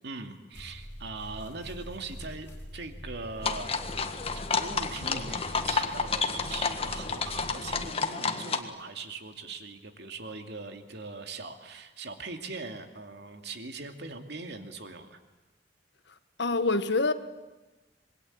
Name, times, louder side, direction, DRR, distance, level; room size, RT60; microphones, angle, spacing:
voice 1, 0.0-2.5 2.7-3.7 4.3-15.2, right 3 dB, 65° right, 2.6 m, -41 dB
sound 1, 0.5-7.9, equal, 15° left, 4.3 m, -44 dB
sound 2, 3.4-8.6, left 4 dB, 35° left, 1.6 m, -30 dB
voice 2, 16.4-17.1, left 3 dB, 70° left, 1.5 m, -25 dB
26.0 x 22.0 x 8.8 m
head